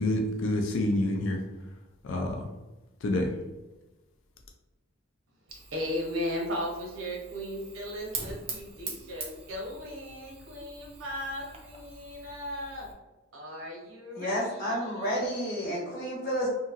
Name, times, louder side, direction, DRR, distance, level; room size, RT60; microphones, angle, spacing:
voice 1, 0.0-1.4 2.0-2.5 3.0-3.3, left 1 dB, 65° left, 4 dB, 0.4 m, -27 dB
Fire, 5.5-12.9, right 4 dB, 30° right, 0.4 m, -44 dB
voice 2, 5.7-12.9 13.3-15.2, left 1 dB, 75° right, -1 dB, 0.8 m, -36 dB
voice 3, 14.1-16.5, equal, 45° left, -4 dB, 0.9 m, -30 dB
2.8 x 2.6 x 2.5 m, 1.1 s
head